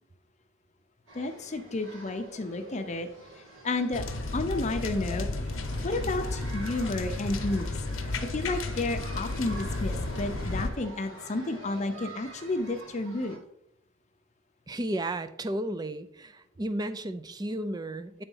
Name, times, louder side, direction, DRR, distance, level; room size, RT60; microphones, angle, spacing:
voice 1, 1.1-3.1 3.6-4.0 4.3-5.3 5.8-13.4, left 2 dB, 35° left, 7 dB, 0.6 m, -31 dB
sound 1, 1.1-13.4, right 1 dB, 75° right, 2.1 m, -46 dB
sound 2, 3.9-10.7, left 2 dB, 75° left, 0.8 m, -33 dB
voice 2, 14.7-18.2, right 1 dB, 20° right, 12 dB, 0.4 m, -33 dB
9.0 x 4.0 x 5.5 m, 0.76 s
head